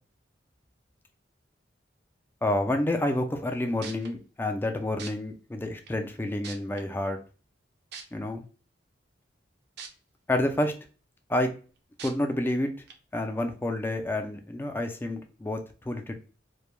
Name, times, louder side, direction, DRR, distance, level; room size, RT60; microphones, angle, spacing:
voice 1, 2.4-7.2 8.1-8.4 10.3-10.7 11.3-11.5 12.0-12.7 13.1-16.1, left 1 dB, 10° left, 4 dB, 0.3 m, -29 dB
sound 1, 3.5-3.6 3.8-4.1 5.0-5.1 5.9-6.0 6.4-6.8 7.9-8.0 9.8-9.9 10.4-10.5 12.0-12.1 12.9-13.0, right 6 dB, 60° right, 0.4 m, -40 dB
2.2 x 2.1 x 3.0 m, 0.37 s
head